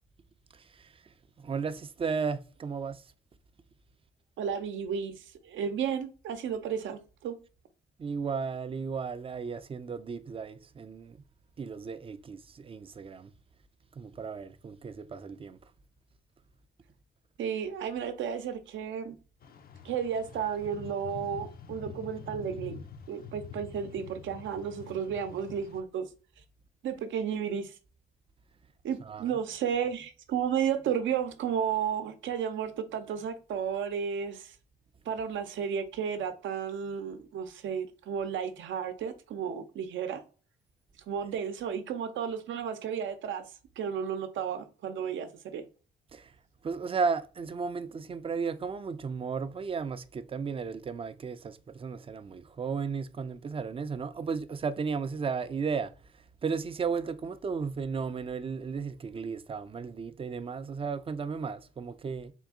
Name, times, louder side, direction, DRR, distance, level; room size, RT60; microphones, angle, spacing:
voice 1, 1.4-3.0 8.0-11.2 11.6-13.3 14.0-15.6 29.1-29.3 46.1-46.3 46.6-55.9 56.4-62.3, right 5 dB, 30° right, 0.4 m, -34 dB
voice 2, 4.4-7.4 17.4-19.2 19.8-22.8 23.1-26.1 26.8-27.8 28.8-34.5 35.1-40.2 41.1-43.5 43.8-45.6, right 7 dB, 75° right, 0.7 m, -33 dB
sound 1, 19.4-25.8, left 5 dB, 50° left, 0.5 m, -46 dB
3.8 x 2.5 x 3.6 m
cardioid pair, 90°, 20 cm